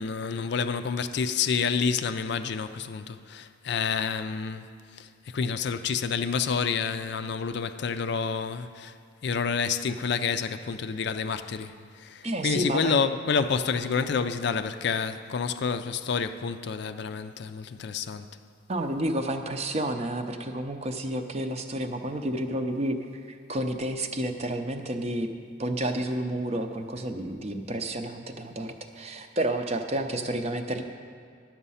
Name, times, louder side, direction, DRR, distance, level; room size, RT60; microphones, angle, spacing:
voice 1, 0.0-9.0 9.2-18.3, left 5 dB, 55° left, 0.4 m, -29 dB
voice 2, 12.2-13.0 18.7-25.3 25.6-30.8, right 1 dB, 30° right, 0.6 m, -30 dB
11.5 x 7.3 x 5.6 m
head